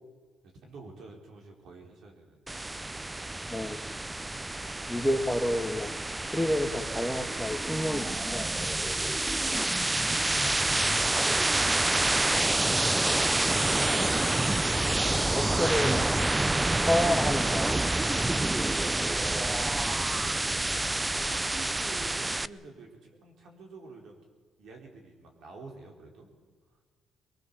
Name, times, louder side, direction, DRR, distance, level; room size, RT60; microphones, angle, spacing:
voice 1, 0.4-2.5 2.9-3.2 5.1-5.3 8.4-9.2 9.8-11.8 12.2-15.4 18.0-18.7 20.6-24.2 24.6-26.3 26.7-26.8, right 3 dB, 70° right, 1 dB, 4.9 m, -50 dB
sound 1, 2.5-22.5, right 2 dB, 15° right, 0.5 m, -28 dB
voice 2, 4.9-6.0 6.3-8.4 12.3-12.5 14.9-15.0 15.3-16.1 16.8-17.7 19.0-19.1 19.9-20.0, left 1 dB, ahead, 6 dB, 1.6 m, -29 dB
22.5 x 20.5 x 7.3 m, 1.5 s
cardioid pair, 90°, 0 cm